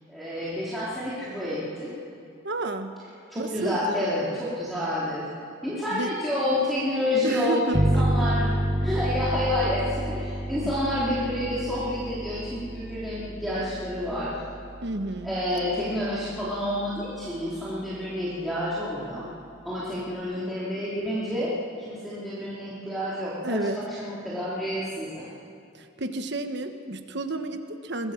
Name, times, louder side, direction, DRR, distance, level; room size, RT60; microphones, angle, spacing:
voice 1, 0.1-1.9 3.3-5.3 5.6-8.5 8.8-14.3 15.2-19.2 19.6-21.5 21.9-25.3, left 1 dB, ahead, -10 dB, 3.2 m, -29 dB
voice 2, 2.4-3.0 3.3-4.1 5.9-6.1 7.2-8.3 10.6-10.7 14.8-15.3 23.4-23.8 25.7-28.1, right 2 dB, 55° right, 7 dB, 1.2 m, -31 dB
sound 1, 7.7-17.0, right 1 dB, 20° right, 1.1 m, -30 dB
22.0 x 17.5 x 7.3 m, 2.5 s
head